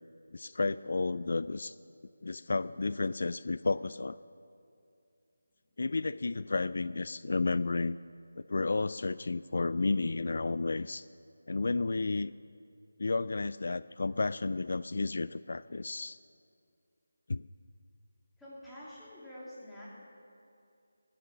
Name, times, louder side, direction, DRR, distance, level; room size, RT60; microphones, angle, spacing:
voice 1, 0.3-1.8 2.2-4.2 5.8-8.0 8.4-11.1 11.5-12.3 13.0-16.2 17.3-17.5, left 3 dB, 60° left, 16 dB, 0.3 m, -32 dB
voice 2, 18.4-19.9, left 1 dB, 5° left, -10 dB, 3.1 m, -47 dB
17.0 x 10.0 x 7.1 m, 2.5 s
figure-of-eight pair, 170°, 0 cm